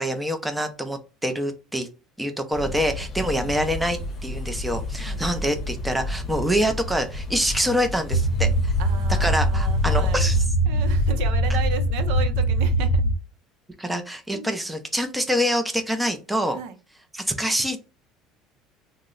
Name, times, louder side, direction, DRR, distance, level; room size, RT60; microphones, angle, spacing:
voice 1, 0.0-1.9 2.2-8.7 9.2-10.4 13.8-16.6 17.1-17.9, equal, 5° right, 0.5 m, -26 dB
sound 1, 2.5-10.5, left 2 dB, 40° left, 0.7 m, -33 dB
voice 2, 3.2-3.6 5.1-5.2 6.1-6.3 8.8-10.3 10.7-13.0 14.3-14.5 16.5-16.8, right 7 dB, 80° right, 0.5 m, -34 dB
sound 2, 8.1-13.1, equal, 80° left, 0.6 m, -21 dB
2.8 x 2.0 x 3.7 m
cardioid pair, 125°, 0 cm